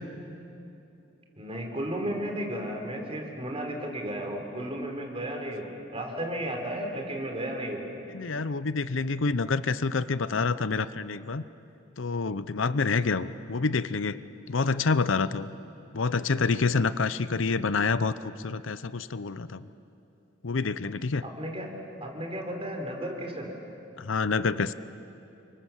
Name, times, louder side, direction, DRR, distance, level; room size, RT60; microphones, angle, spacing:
voice 1, 1.4-7.9 21.2-21.7 22.0-23.5, right 1 dB, 30° right, 2 dB, 3.8 m, -34 dB
voice 2, 8.1-11.4 12.0-14.2 14.5-15.5 15.9-19.6 20.4-21.2 24.0-24.7, left 4 dB, 75° left, 14 dB, 0.7 m, -27 dB
30.0 x 24.5 x 7.4 m, 2.7 s
head